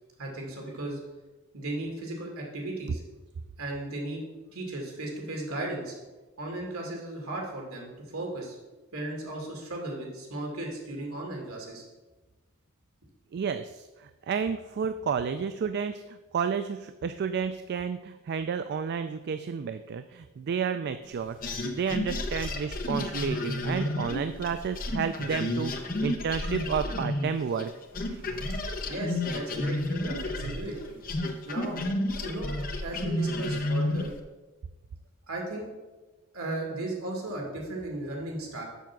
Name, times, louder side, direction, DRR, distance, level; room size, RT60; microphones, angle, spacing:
voice 1, 0.2-1.0 1.5-3.0 3.6-4.2 4.5-5.9 6.4-8.6 8.9-11.8 28.9-31.0 31.4-31.8 32.2-32.5 32.8-34.1 35.3-35.7 36.3-38.6, right 2 dB, 80° right, 0 dB, 2.3 m, -35 dB
voice 2, 13.3-27.7 28.0-28.5, right 6 dB, 50° right, 10 dB, 0.3 m, -31 dB
sound 1, 21.4-27.7 27.9-34.2, left 1 dB, 40° left, 0.9 m, -31 dB
6.9 x 6.2 x 6.0 m, 1.2 s
head